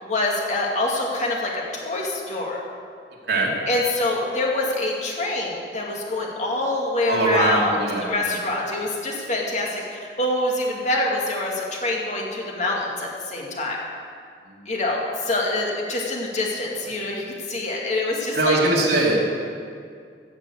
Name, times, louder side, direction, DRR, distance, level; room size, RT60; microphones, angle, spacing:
voice 1, 0.0-2.6 3.7-13.8 14.7-18.6, left 2 dB, 40° left, -2 dB, 2.4 m, -25 dB
voice 2, 7.1-8.4 14.5-14.6 18.3-19.3, right 2 dB, 65° right, -4 dB, 2.9 m, -21 dB
16.0 x 6.0 x 8.0 m, 2.2 s
head